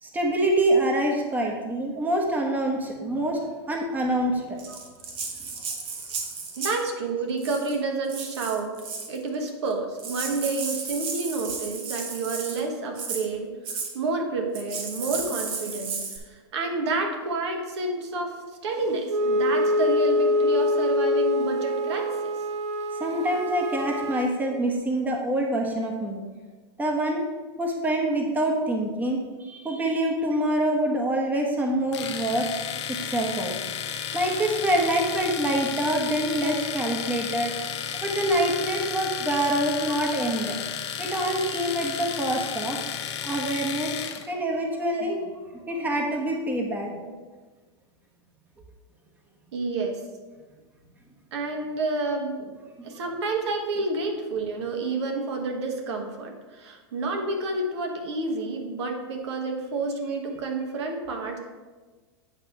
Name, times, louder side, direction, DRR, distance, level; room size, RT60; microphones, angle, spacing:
voice 1, 0.0-3.4 3.7-4.6 22.9-26.2 26.8-27.2 27.6-32.5 32.9-33.6 33.8-37.5 38.0-40.6 41.0-44.0 44.3-45.2 45.6-46.9 52.8-52.9 53.8-53.9, right 1 dB, 10° right, 1 dB, 1.0 m, -26 dB
Rattle (instrument), 4.6-6.9 7.4-7.7 8.1-9.2 9.7-9.8 10.0-12.6 12.9-13.2 13.6-13.9 14.5-16.2, right 5 dB, 40° right, 1.2 m, -34 dB
voice 2, 6.6-8.7 9.1-18.4 18.6-22.3 23.8-23.9 34.7-34.8 36.4-36.7 41.7-42.3 44.8-45.1 47.0-47.1 49.5-50.0 51.3-52.5 52.8-61.4, right 3 dB, 75° right, 3 dB, 1.3 m, -30 dB
Wind instrument woodwind instrument, 19.1-24.4, left 1 dB, 90° right, 0.6 m, -25 dB
Domestic sounds home sounds, 31.9-44.3, left 8 dB, 80° left, 0.8 m, -33 dB
8.8 x 3.0 x 5.7 m, 1.3 s
hypercardioid pair, 125°, 14 cm